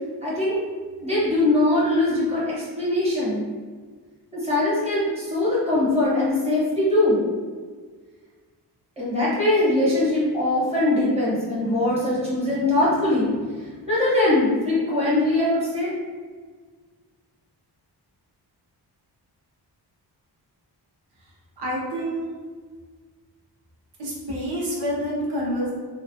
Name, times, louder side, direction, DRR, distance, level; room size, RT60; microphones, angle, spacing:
voice 1, 0.2-0.6 1.0-3.4 4.3-7.2 9.0-13.3 13.6-16.0, left 1 dB, 15° right, -8 dB, 1.1 m, -22 dB
voice 2, 21.6-22.3 24.0-25.7, equal, 70° right, -4 dB, 0.9 m, -27 dB
3.3 x 2.1 x 2.7 m, 1.5 s
wide cardioid pair, 155°, 42 cm